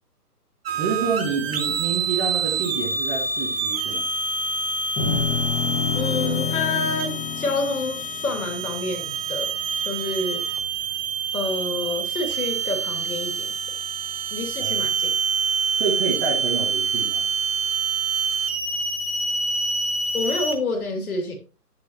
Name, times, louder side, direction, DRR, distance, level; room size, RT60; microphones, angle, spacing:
voice 1, 0.7-4.0 14.6-14.8 15.8-17.2, right 5 dB, 10° right, -1 dB, 1.0 m, -28 dB
sound 1, 0.7-20.6, right 4 dB, 40° right, 1.9 m, -26 dB
sound 2, 5.0-9.4, left 5 dB, 15° left, 2.0 m, -29 dB
voice 2, 5.9-9.5 9.8-10.5 11.3-13.5 14.3-15.1 20.1-21.3, left 2 dB, 60° left, 3 dB, 2.8 m, -28 dB
10.5 x 6.8 x 3.0 m, 0.35 s
figure-of-eight pair, 140°, 48 cm